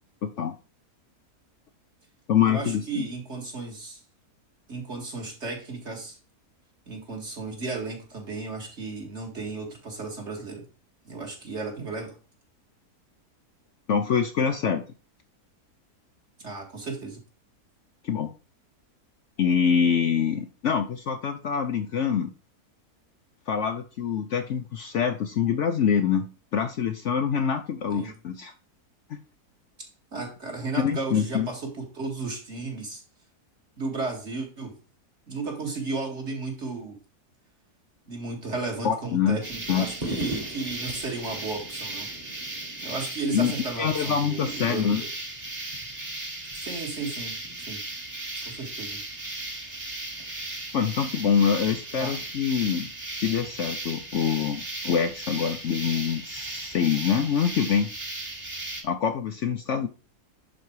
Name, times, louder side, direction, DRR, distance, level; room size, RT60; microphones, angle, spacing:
voice 1, 0.2-0.5 2.3-3.1 13.9-14.8 18.0-18.3 19.4-22.3 23.5-26.3 26.5-28.5 29.1-29.2 30.8-31.5 38.8-39.4 39.7-39.9 43.3-43.5 43.8-45.0 50.7-52.9 53.2-57.9 58.8-59.9, left 7 dB, 60° left, 8 dB, 0.8 m, -25 dB
voice 2, 2.4-4.0 4.7-6.2 6.9-10.6 11.1-12.2 16.4-17.2 27.9-28.1 29.8-33.0 33.8-34.7 35.3-37.0 38.1-42.1 42.8-45.1 46.5-47.8 48.5-49.0 52.0-52.1, right 3 dB, 45° right, 1 dB, 2.4 m, -34 dB
sound 1, 39.4-58.8, right 2 dB, 25° right, 1.6 m, -36 dB
10.5 x 4.3 x 4.7 m, 0.34 s
omnidirectional pair, 1.7 m